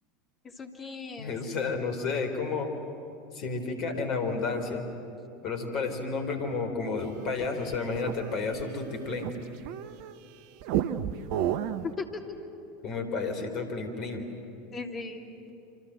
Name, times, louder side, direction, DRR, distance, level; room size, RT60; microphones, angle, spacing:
voice 1, 0.4-1.4 12.0-12.2 14.7-15.5, left 4 dB, 30° left, 3 dB, 2.8 m, -38 dB
voice 2, 1.2-2.7 3.3-4.8 5.4-9.3 12.8-14.3, left 4 dB, 45° left, 7 dB, 4.1 m, -31 dB
sound 1, 7.1-10.2 10.6-11.9, right 10 dB, 55° right, 0.9 m, -32 dB
27.0 x 26.0 x 7.8 m, 2.7 s
figure-of-eight pair, 80°, 0 cm